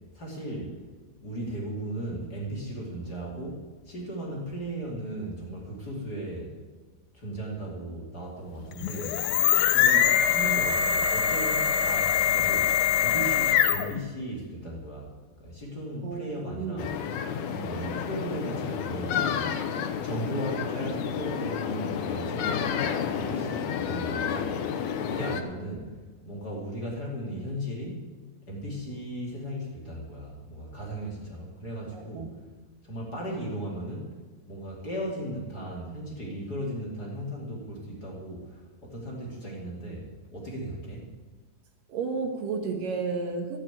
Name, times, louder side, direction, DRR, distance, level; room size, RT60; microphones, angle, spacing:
voice 1, 0.1-0.8 1.2-6.5 7.1-9.2 9.7-15.1 15.4-16.9 17.4-19.4 20.0-22.6 23.1-24.6 25.0-25.9 26.2-28.0 28.5-32.3 32.8-34.1 34.5-41.1, right 1 dB, 30° left, -3 dB, 2.8 m, -36 dB
sound 1, 8.7-14.0, left 9 dB, 90° left, 2.6 m, -23 dB
voice 2, 16.0-16.9 31.9-32.3 41.9-43.6, right 4 dB, 70° right, 4 dB, 2.8 m, -32 dB
sound 2, 16.8-25.4, left 7 dB, 70° left, 2.1 m, -31 dB
13.5 x 7.9 x 9.2 m, 1.4 s
omnidirectional pair, 4.2 m